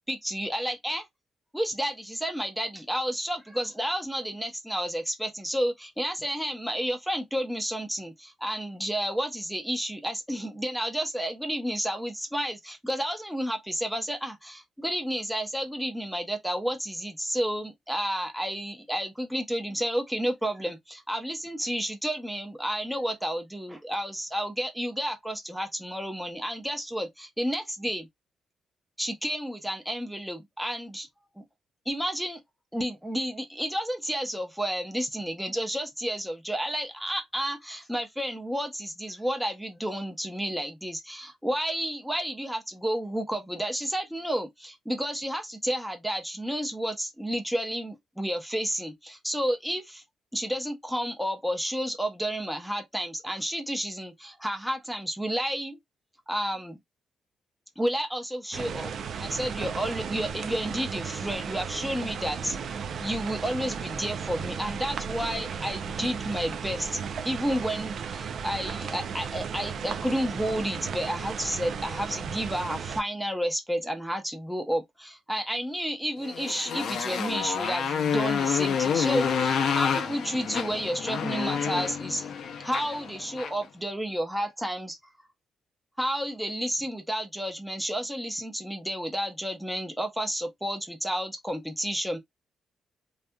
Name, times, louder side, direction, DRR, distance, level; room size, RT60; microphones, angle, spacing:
voice 1, 0.1-1.1 1.5-28.1 29.0-31.1 31.4-31.5 31.9-32.4 32.7-50.0 50.3-55.8 56.3-56.8 57.8-62.6 63.0-67.0 67.2-82.3 82.6-85.0 86.0-92.2, equal, ahead, 0.7 m, -31 dB
sound 1, 58.5-73.0, right 6 dB, 65° right, 0.3 m, -35 dB
Motorcycle, 76.2-83.6, left 7 dB, 75° left, 0.5 m, -28 dB
2.7 x 2.4 x 2.2 m
cardioid pair, 110°, 0 cm